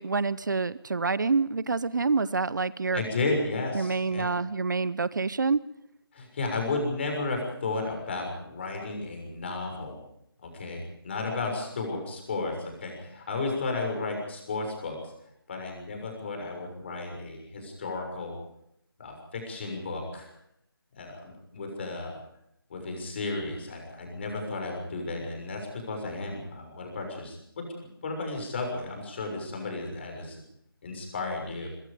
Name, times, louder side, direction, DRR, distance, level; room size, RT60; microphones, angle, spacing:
voice 1, 0.0-3.0 3.7-5.6, right 4 dB, 50° right, 18 dB, 0.7 m, -27 dB
voice 2, 2.9-4.4 6.1-10.0 10.4-15.0 15.5-18.3 19.0-20.3 21.0-22.2 22.7-27.7 28.0-30.4 30.8-31.7, left 3 dB, 30° left, 3 dB, 6.6 m, -33 dB
24.0 x 22.0 x 5.2 m, 0.77 s
figure-of-eight pair, 170°, 13 cm